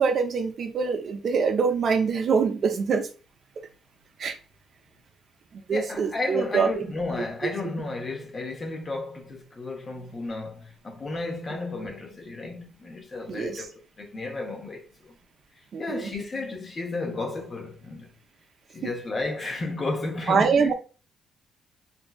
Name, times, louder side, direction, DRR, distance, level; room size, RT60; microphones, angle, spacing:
voice 1, 0.0-3.1 4.2-4.3 5.7-6.9 13.3-13.7 15.7-16.1 18.8-18.9 20.3-20.7, right 5 dB, 55° right, 0.5 m, -24 dB
voice 2, 5.7-13.7 14.0-15.1 15.8-18.1 18.7-20.7, left 3 dB, 35° left, 0.8 m, -33 dB
3.1 x 2.6 x 2.3 m
cardioid pair, 90°, 0 cm